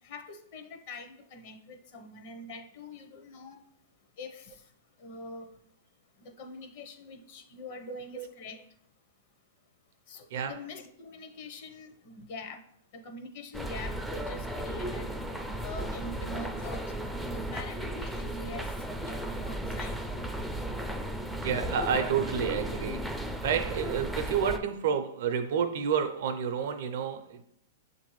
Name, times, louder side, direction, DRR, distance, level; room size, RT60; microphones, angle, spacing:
voice 1, 0.0-3.6 4.2-4.6 5.0-5.5 6.2-8.6 10.1-12.6 12.9-15.1 15.6-16.9 17.3-18.7 19.0-20.3, left 2 dB, 55° left, 0.7 m, -44 dB
sound 1, 13.5-24.6, right 1 dB, ahead, 0.3 m, -35 dB
voice 2, 21.3-27.4, right 7 dB, 65° right, 0.5 m, -30 dB
6.7 x 2.6 x 3.1 m
hypercardioid pair, 135°, 0 cm